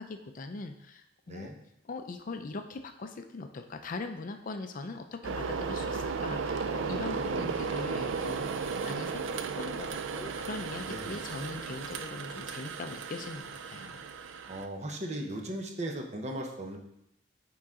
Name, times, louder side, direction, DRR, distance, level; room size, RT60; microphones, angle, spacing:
voice 1, 0.0-1.5 1.8-14.0, left 3 dB, 45° left, 7 dB, 0.4 m, -41 dB
sound 1, 5.2-14.7, right 5 dB, 75° right, 0.4 m, -35 dB
voice 2, 6.8-7.5 10.8-11.2 14.5-16.8, right 1 dB, 35° right, 2 dB, 0.8 m, -38 dB
8.7 x 3.8 x 3.7 m, 0.79 s
head